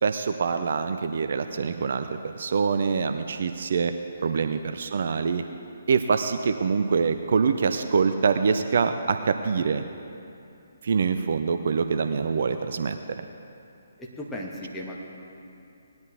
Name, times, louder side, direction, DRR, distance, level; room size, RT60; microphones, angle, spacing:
voice 1, 0.0-3.9 4.2-5.4 5.9-9.8 10.8-13.2, right 5 dB, 55° right, 8 dB, 0.6 m, -25 dB
voice 2, 4.2-4.5 11.9-12.1 12.5-12.6 14.0-15.0, left 1 dB, 5° left, -4 dB, 1.7 m, -38 dB
19.0 x 10.5 x 3.4 m, 2.7 s
figure-of-eight pair, 135°, 0 cm